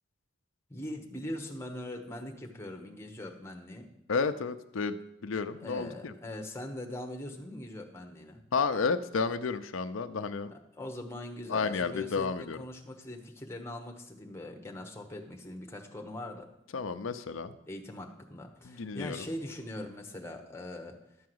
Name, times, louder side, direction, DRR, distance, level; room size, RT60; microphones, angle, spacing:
voice 1, 0.7-3.9 5.6-8.4 10.8-16.4 17.7-21.0, left 1 dB, 15° left, 2 dB, 1.1 m, -41 dB
voice 2, 4.1-6.1 8.5-10.5 11.5-12.6 16.7-17.6 18.6-19.3, left 4 dB, 90° left, 10 dB, 0.6 m, -31 dB
12.0 x 4.7 x 7.8 m, 0.83 s
head